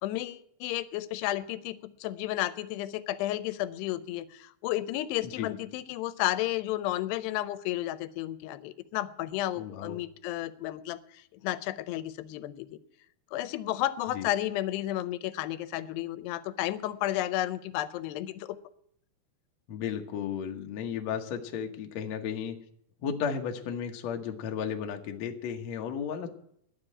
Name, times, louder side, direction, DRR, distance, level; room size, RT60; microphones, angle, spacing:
voice 1, 0.0-12.8 13.3-18.6, left 14 dB, 85° left, 14 dB, 2.7 m, -32 dB
voice 2, 9.6-10.0 14.1-14.3 19.7-22.6 23.0-26.3, left 7 dB, 70° left, 3 dB, 1.7 m, -34 dB
11.5 x 7.5 x 9.8 m, 0.71 s
omnidirectional pair, 4.7 m